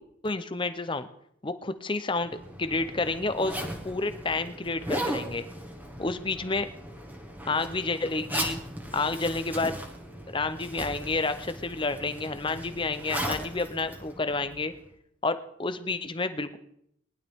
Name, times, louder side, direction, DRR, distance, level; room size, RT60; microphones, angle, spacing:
voice 1, 0.2-1.1 1.4-5.5 6.0-6.7 7.5-8.6 8.9-9.7 10.3-14.7 15.2-16.6, left 3 dB, 25° left, 11 dB, 0.7 m, -30 dB
Zipper (clothing), 2.2-14.8, right 1 dB, 10° right, 1.6 m, -37 dB
19.5 x 11.5 x 3.6 m, 0.73 s
head